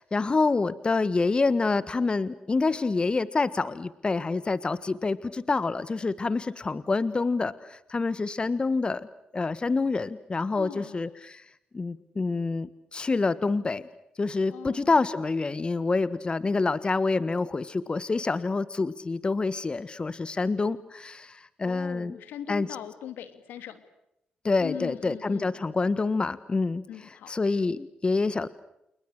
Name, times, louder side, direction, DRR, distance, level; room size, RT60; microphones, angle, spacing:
voice 1, 0.0-9.1 9.3-11.4 11.7-13.9 14.2-22.2 22.5-22.7 24.4-28.5, left 3 dB, 30° left, 16 dB, 1.5 m, -27 dB
voice 2, 10.5-11.0 14.5-14.9 21.6-23.8 24.6-25.7 26.9-27.3, left 10 dB, 85° left, 11 dB, 2.9 m, -40 dB
29.5 x 29.5 x 6.6 m, 0.82 s
supercardioid pair, 60°, 3 cm